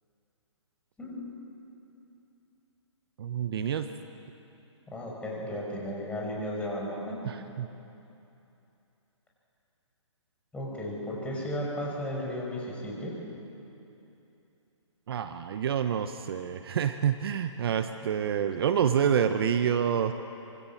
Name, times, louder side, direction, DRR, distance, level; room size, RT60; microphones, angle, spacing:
voice 1, 1.0-1.3 4.9-7.3 10.5-13.2, left 1 dB, 5° left, -3 dB, 5.8 m, -34 dB
voice 2, 3.2-3.9 7.3-7.7 15.1-20.1, right 8 dB, 50° right, 9 dB, 1.1 m, -27 dB
26.0 x 24.0 x 7.3 m, 2.9 s
hypercardioid pair, 140°, 16 cm